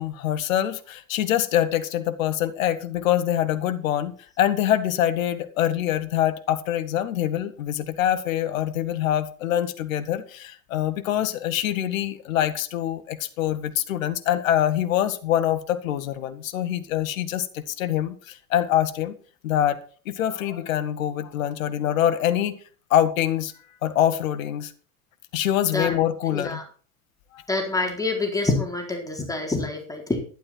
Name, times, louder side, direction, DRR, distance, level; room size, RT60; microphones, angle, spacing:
voice 1, 0.0-19.1 19.4-19.8 20.0-22.6 22.9-23.5 23.8-24.7 25.3-26.6 27.3-27.4, left 11 dB, 70° left, 1.5 m, -24 dB
voice 2, 26.3-26.6 27.5-30.2, left 3 dB, 10° left, 4.1 m, -26 dB
12.0 x 11.0 x 4.4 m
hypercardioid pair, 85°, 42 cm